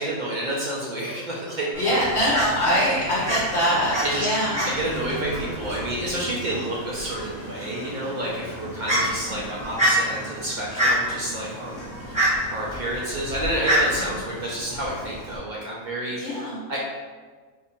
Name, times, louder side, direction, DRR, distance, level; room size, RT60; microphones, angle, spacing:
voice 1, 0.0-1.7 3.9-4.3 4.7-12.2 12.5-16.2 16.7-16.8, right 1 dB, 60° right, -5 dB, 0.5 m, -29 dB
Fowl, 1.7-15.4, equal, 5° right, 0.8 m, -28 dB
voice 2, 1.8-4.7 16.2-16.7, equal, 65° left, -6 dB, 0.9 m, -23 dB
2.7 x 2.5 x 4.2 m, 1.5 s
omnidirectional pair, 1.4 m